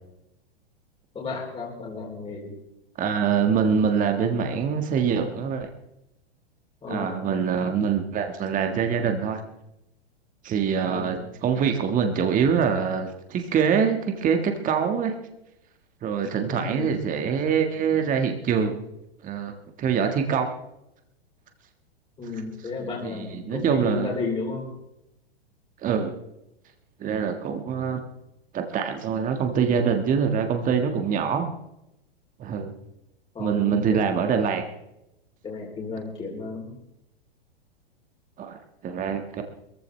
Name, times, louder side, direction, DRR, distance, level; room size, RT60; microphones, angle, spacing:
voice 1, 1.1-2.5 6.8-7.2 10.9-11.3 16.5-16.9 22.2-24.7 33.3-34.0 35.4-36.8, left 4 dB, 20° left, -3 dB, 3.6 m, -33 dB
voice 2, 3.0-5.7 6.9-9.4 10.4-15.2 16.0-18.8 19.2-19.5 19.8-20.5 22.8-24.2 25.8-26.1 27.0-28.0 28.5-31.5 32.4-32.7 33.4-34.6 38.4-39.4, right 7 dB, 25° right, 5 dB, 1.7 m, -24 dB
21.5 x 15.0 x 3.3 m, 0.85 s
hypercardioid pair, 110°, 31 cm